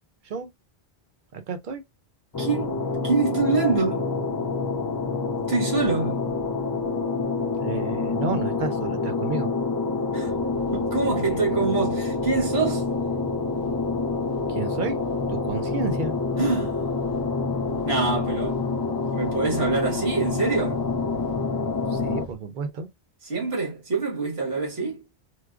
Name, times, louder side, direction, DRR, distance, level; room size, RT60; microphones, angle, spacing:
voice 1, 1.3-1.8 7.6-9.5 14.5-15.0 15.3-16.2 21.9-22.9, right 4 dB, 55° right, 0.7 m, -31 dB
sound 1, 2.3-22.2, left 4 dB, 30° left, 0.4 m, -27 dB
voice 2, 2.4-4.1 5.5-6.3 10.1-10.3 10.7-12.9 16.4-16.8 17.8-18.7 19.1-20.8 23.2-25.0, right 4 dB, 90° right, 1.7 m, -25 dB
sound 2, 10.2-22.4, left 1 dB, 65° left, 0.8 m, -44 dB
4.7 x 2.0 x 2.3 m
omnidirectional pair, 1.0 m